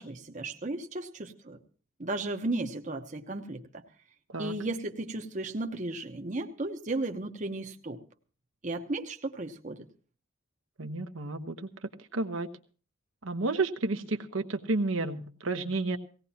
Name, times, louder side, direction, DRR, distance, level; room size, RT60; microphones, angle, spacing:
voice 1, 0.0-1.6 2.0-3.8 4.4-8.0 8.6-9.9, right 2 dB, 40° right, 4 dB, 0.9 m, -35 dB
voice 2, 10.8-11.7 12.1-12.5 13.2-16.0, right 3 dB, 75° right, 6 dB, 1.1 m, -31 dB
19.0 x 17.0 x 2.8 m, 0.39 s
head